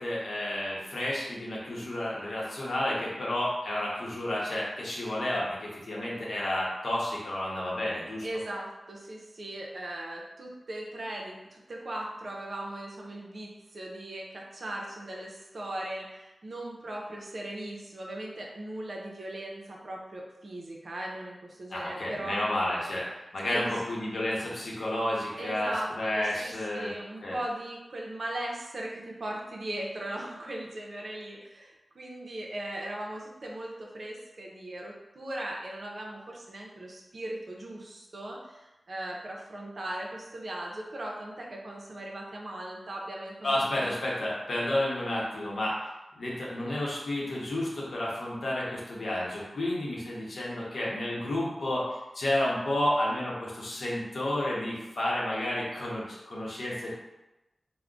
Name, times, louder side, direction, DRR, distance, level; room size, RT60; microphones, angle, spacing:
voice 1, 0.0-8.3 21.7-26.9 27.2-27.4 43.4-45.8 46.2-51.9 52.1-57.0, left 1 dB, 85° left, -5 dB, 0.7 m, -31 dB
voice 2, 8.2-22.4 23.4-23.7 25.4-25.9 26.1-44.0, right 1 dB, 60° right, -2 dB, 0.5 m, -38 dB
3.7 x 2.1 x 2.3 m, 1.0 s
wide cardioid pair, 110°, 0 cm